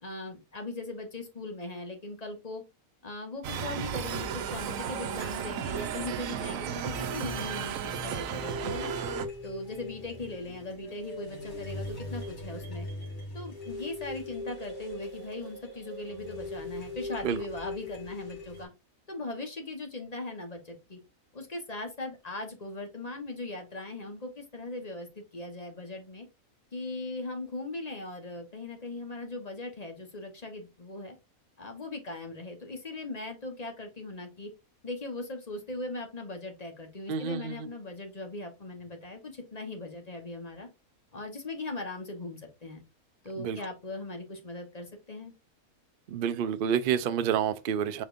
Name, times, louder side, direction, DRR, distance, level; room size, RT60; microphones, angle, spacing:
voice 1, 0.0-2.6 3.0-8.9 9.4-12.9 13.3-18.7 19.1-21.0 21.3-26.3 26.7-31.2 31.6-34.5 34.8-40.7 41.1-42.8 43.2-45.3, left 2 dB, 30° left, 1.1 m, -39 dB
sound 1, 3.4-9.3, right 8 dB, 70° right, 1.0 m, -34 dB
sound 2, 6.7-18.7, left 2 dB, 50° left, 2.3 m, -40 dB
voice 2, 37.1-37.7 43.4-43.6 46.1-48.0, right 8 dB, 85° right, 0.4 m, -29 dB
5.0 x 4.2 x 2.5 m
omnidirectional pair, 1.5 m